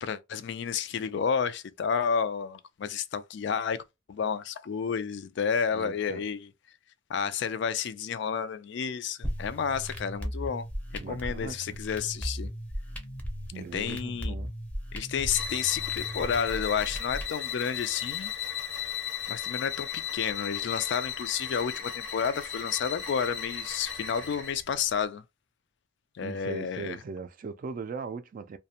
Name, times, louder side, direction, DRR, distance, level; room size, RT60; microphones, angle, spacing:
voice 1, 0.0-3.8 4.1-6.5 7.1-10.7 11.1-12.5 13.7-14.3 14.9-18.3 19.3-25.2 26.2-27.0, left 7 dB, 65° left, 0.3 m, -31 dB
voice 2, 5.7-6.2 11.0-11.8 13.5-14.5 26.2-28.6, right 4 dB, 45° right, 0.3 m, -39 dB
sound 1, 9.2-17.2, equal, 5° left, 0.5 m, -37 dB
sound 2, 15.3-24.6, left 9 dB, 85° left, 1.1 m, -35 dB
2.4 x 2.1 x 2.7 m
head